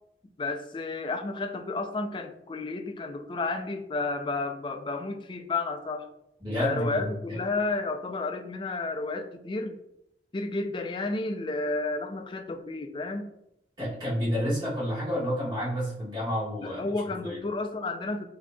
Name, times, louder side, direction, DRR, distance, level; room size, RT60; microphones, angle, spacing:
voice 1, 0.4-6.1 6.6-9.8 10.3-13.3 16.6-18.2, left 3 dB, 25° left, 6 dB, 0.3 m, -31 dB
voice 2, 6.4-7.4 13.8-16.8 17.2-17.4, equal, 25° right, -7 dB, 1.4 m, -30 dB
7.2 x 2.7 x 2.2 m, 0.83 s
head